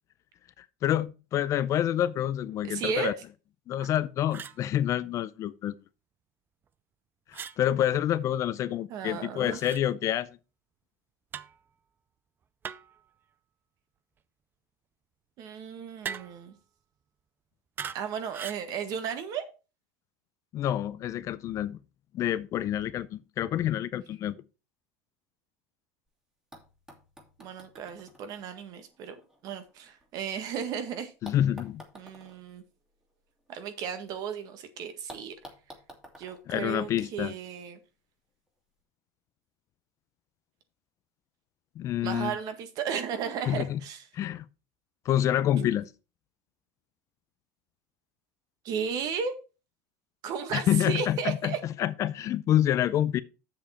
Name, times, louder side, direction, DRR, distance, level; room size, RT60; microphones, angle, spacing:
voice 1, 0.6-3.1 3.7-5.8 7.3-10.3 20.5-21.8 22.1-24.3 31.2-31.8 36.5-37.3 41.8-42.4 43.5-43.8 44.1-44.4 45.1-45.9 50.5-53.2, left 11 dB, 40° left, 0.5 m, -27 dB
voice 2, 2.6-3.1 8.9-9.6 15.4-16.5 17.9-19.5 27.4-29.2 29.4-31.1 31.9-32.6 33.5-35.3 36.2-37.8 42.0-44.0 45.6-45.7 48.6-49.3 50.2-51.6, right 7 dB, 50° right, 1.7 m, -34 dB
sound 1, 3.8-4.0 4.3-4.6 7.3-7.6 9.5-9.8 11.3-11.6 12.6-13.0 16.0-16.5 17.8-18.0 18.3-18.7, right 7 dB, 25° right, 0.5 m, -39 dB
sound 2, 26.1-26.2 26.5-30.6 31.2-34.2 34.5-34.6 35.1-37.5 38.5-38.6, right 1 dB, 10° right, 2.3 m, -52 dB
7.5 x 7.0 x 4.4 m
supercardioid pair, 125°, 8 cm